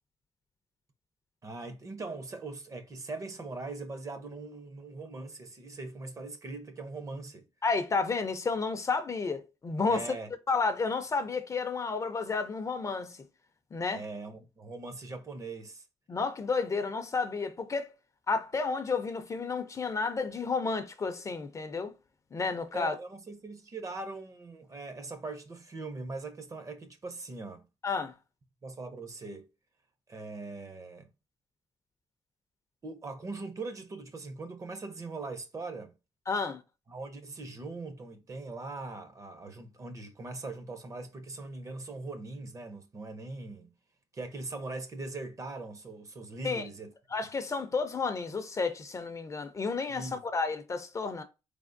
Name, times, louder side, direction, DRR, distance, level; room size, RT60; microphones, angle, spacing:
voice 1, 1.4-7.4 9.9-10.3 13.9-15.8 22.7-27.6 28.6-29.5 30.1-31.1 32.8-35.9 36.9-43.7 44.1-46.9 49.9-50.2, right 3 dB, 30° right, 0.6 m, -41 dB
voice 2, 7.6-10.1 10.5-13.2 13.7-14.0 16.1-17.9 18.3-21.9 22.3-23.0 27.8-28.1 36.3-36.6 46.4-46.6 47.1-51.2, left 4 dB, 30° left, 0.4 m, -31 dB
4.2 x 3.4 x 2.5 m
cardioid pair, 145°, 11 cm